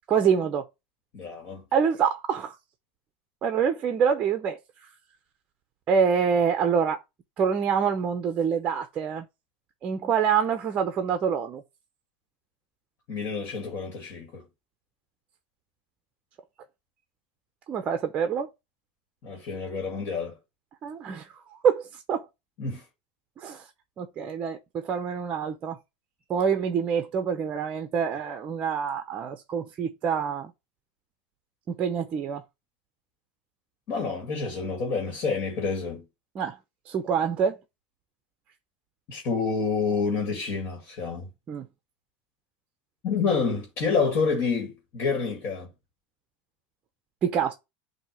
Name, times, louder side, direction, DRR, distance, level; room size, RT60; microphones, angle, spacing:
voice 1, 0.1-0.6 1.7-2.6 3.4-4.6 5.9-7.0 7.4-9.3 9.8-11.6 17.7-18.5 20.8-21.3 21.6-22.3 23.4-23.6 24.0-25.8 26.3-30.5 31.7-32.4 36.3-36.6 36.9-37.6 41.5-41.7 47.2-47.5, right 7 dB, 25° right, 0.7 m, -26 dB
voice 2, 1.1-1.6 13.1-14.4 19.2-20.3 22.6-22.8 33.9-36.0 39.1-41.3 43.0-45.7, left 5 dB, 40° left, 2.0 m, -28 dB
7.8 x 2.8 x 5.9 m
supercardioid pair, 160°, 5 cm